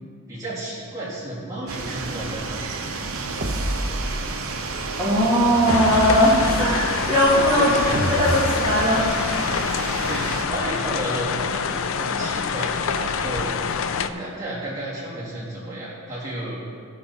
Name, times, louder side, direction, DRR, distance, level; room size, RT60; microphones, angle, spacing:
voice 1, 0.3-2.6 7.6-8.0 8.9-9.1 10.1-13.5 14.0-16.6, right 1 dB, 15° right, -9 dB, 2.9 m, -32 dB
sound 1, 1.7-10.5, right 3 dB, 75° right, 0.9 m, -31 dB
sound 2, 3.4-4.5 5.7-6.9 7.9-9.2, right 1 dB, 45° right, 1.0 m, -29 dB
voice 2, 5.0-7.7 8.1-9.0, equal, 5° left, -11 dB, 2.3 m, -19 dB
sound 3, 5.7-14.1, left 6 dB, 65° left, 0.4 m, -26 dB
15.0 x 6.3 x 4.3 m, 2.2 s
head